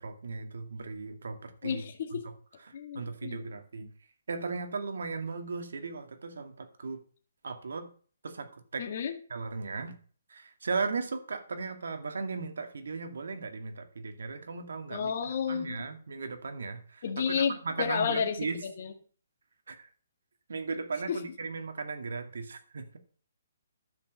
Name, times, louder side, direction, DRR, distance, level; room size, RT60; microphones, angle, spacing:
voice 1, 0.0-1.8 2.1-2.3 2.6-3.9 4.3-7.0 7.4-7.9 8.2-8.9 9.3-10.0 10.3-15.1 15.5-18.6 19.7-19.9 20.5-23.0, right 4 dB, 75° right, 7 dB, 2.0 m, -37 dB
voice 2, 1.6-2.2 2.7-3.4 8.8-9.2 14.9-15.8 17.0-18.4 18.6-18.9 21.1-21.2, left 7 dB, 40° left, 3 dB, 1.8 m, -31 dB
12.0 x 5.2 x 7.5 m, 0.42 s
hypercardioid pair, 175°, 0 cm